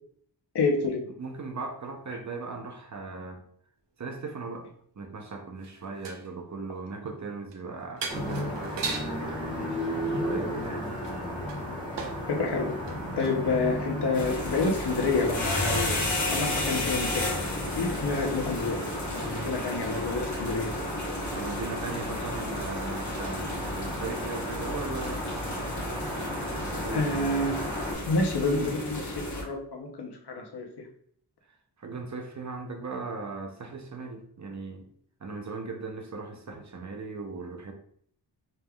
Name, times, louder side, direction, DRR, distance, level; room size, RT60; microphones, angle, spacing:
voice 1, 0.5-1.0 12.3-12.7 13.2-16.0 16.3-17.3 17.7-20.7 26.9-27.6 28.1-30.9, left 3 dB, 70° left, 1 dB, 0.9 m, -28 dB
voice 2, 1.2-3.4 4.0-4.7 5.0-10.9 21.3-25.3 26.6-27.5 31.8-34.9 35.2-37.7, right 4 dB, 45° right, 4 dB, 0.6 m, -38 dB
sound 1, 5.6-6.3 7.5-7.6 8.0-9.2 10.6-12.3 12.7-13.4 14.0-14.1, right 4 dB, 85° right, 0.7 m, -38 dB
sound 2, 8.1-27.9, equal, 10° left, 1.7 m, -35 dB
sound 3, 14.1-29.4, left 2 dB, 45° left, 1.1 m, -33 dB
5.3 x 3.4 x 2.3 m, 0.62 s
wide cardioid pair, 120°, 41 cm